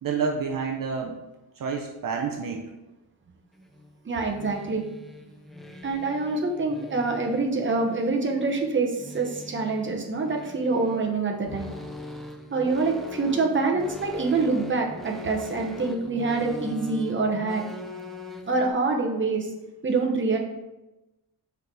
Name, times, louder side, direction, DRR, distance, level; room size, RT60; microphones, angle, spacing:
voice 1, 0.0-1.2 1.6-2.7, right 5 dB, 60° right, 1 dB, 0.8 m, -29 dB
sound 1, 3.5-18.7, left 1 dB, ahead, 0.6 m, -42 dB
voice 2, 4.0-4.8 5.8-11.7 12.5-17.7 18.5-19.5 19.8-20.4, right 3 dB, 30° right, 0 dB, 1.1 m, -26 dB
5.8 x 4.6 x 5.5 m, 1.0 s
wide cardioid pair, 140°, 38 cm